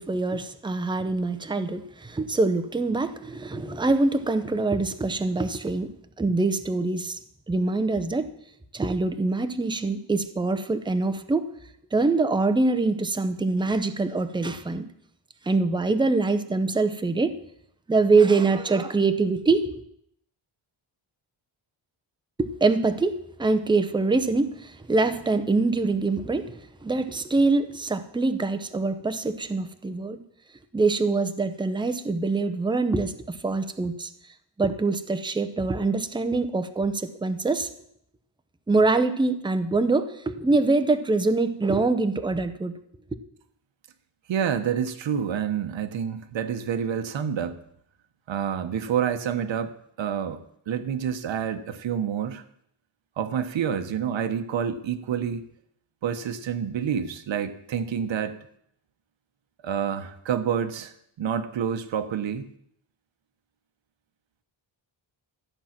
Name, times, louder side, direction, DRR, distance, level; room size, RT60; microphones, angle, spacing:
voice 1, 0.0-7.2 7.5-8.3 8.7-11.5 11.9-14.9 15.4-17.3 17.9-19.8 22.4-30.2 30.7-34.1 34.6-37.7 38.7-42.8, right 3 dB, 10° right, 10 dB, 0.6 m, -24 dB
voice 2, 44.3-47.6 48.3-50.4 50.7-52.4 53.2-55.5 56.0-58.4 59.6-62.5, right 8 dB, 65° right, 9 dB, 1.1 m, -28 dB
13.5 x 9.0 x 5.9 m, 0.71 s
wide cardioid pair, 170°, 48 cm